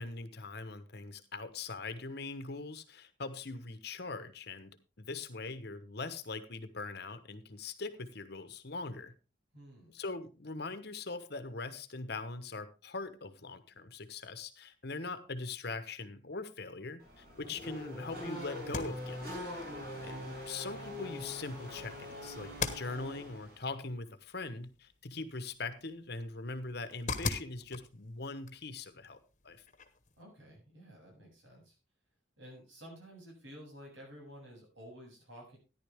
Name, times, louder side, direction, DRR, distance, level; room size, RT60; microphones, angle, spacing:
voice 1, 0.0-9.1 9.9-19.4 20.0-29.2 29.4-29.6, left 3 dB, 55° left, 11 dB, 1.2 m, -41 dB
voice 2, 9.5-9.9 17.4-17.7 30.2-31.8 32.4-35.6, equal, 75° right, 0 dB, 7.6 m, -52 dB
Race car auto racing / Accelerating revving vroom, 17.0-23.7, left 1 dB, 50° right, 6.5 m, -43 dB
sound 1, 18.6-30.2, left 4 dB, 40° left, 1.4 m, -44 dB
14.0 x 10.5 x 3.6 m, 0.30 s
head